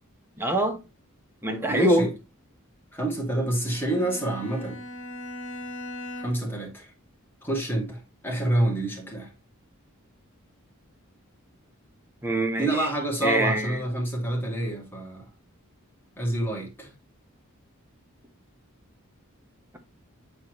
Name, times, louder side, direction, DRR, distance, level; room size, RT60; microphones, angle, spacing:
voice 1, 0.4-0.8 1.4-2.1 12.2-12.9 13.2-13.8, right 1 dB, 10° right, 1.2 m, -24 dB
voice 2, 1.7-2.1 2.9-4.8 6.2-6.9 7.4-9.3 12.6-15.3 16.2-16.9, right 1 dB, 10° left, 2.3 m, -28 dB
Bowed string instrument, 3.5-6.6, equal, 65° left, 2.1 m, -39 dB
8.4 x 4.3 x 3.1 m
head